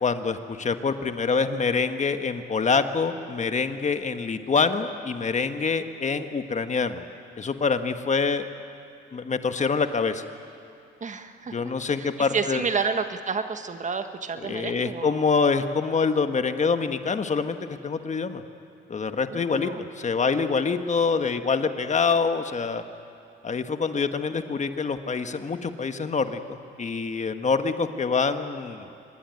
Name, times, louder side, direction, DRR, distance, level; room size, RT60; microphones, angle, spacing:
voice 1, 0.0-7.0 7.4-8.5 9.1-10.2 11.5-12.6 14.4-18.4 18.9-19.7 20.0-22.8 23.4-28.9, left 5 dB, 35° left, 8 dB, 1.5 m, -25 dB
voice 2, 11.0-11.7 12.0-15.2 19.3-19.9, right 5 dB, 40° right, 8 dB, 1.5 m, -30 dB
25.5 x 21.5 x 9.6 m, 2.6 s
cardioid pair, 90°, 20 cm